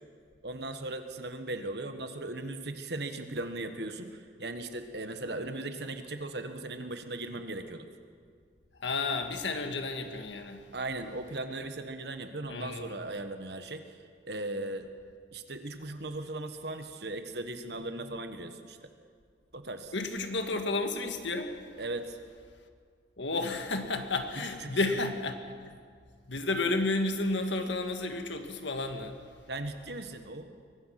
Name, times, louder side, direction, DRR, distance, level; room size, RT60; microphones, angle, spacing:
voice 1, 0.4-7.9 10.7-14.0 14.3-14.9 15.3-18.9 19.5-19.9 21.8-22.2 24.3-25.0 29.5-30.6, right 2 dB, 65° right, 7 dB, 1.5 m, -38 dB
voice 2, 8.8-10.6 12.5-13.0 19.9-21.6 23.2-25.4 25.7-25.8 26.3-29.2, left 2 dB, 80° left, 6 dB, 1.8 m, -31 dB
23.0 x 18.5 x 6.0 m, 2.1 s
head